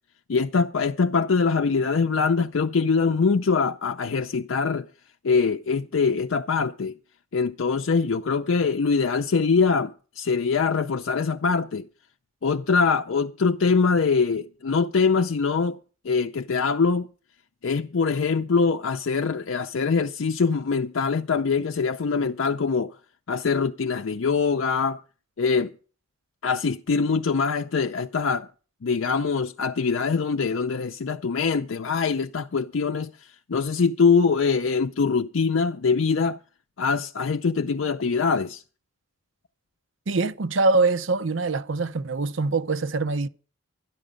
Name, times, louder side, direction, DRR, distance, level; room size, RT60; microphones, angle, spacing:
voice 1, 0.3-4.9 5.2-7.0 7.3-11.8 12.4-17.1 17.6-23.0 23.3-25.0 25.4-25.7 26.4-28.5 28.8-33.1 33.5-36.4 36.8-38.6, left 5 dB, 70° left, 0.5 m, -23 dB
voice 2, 40.1-43.3, right 3 dB, 70° right, 0.7 m, -24 dB
12.5 x 11.0 x 5.1 m
head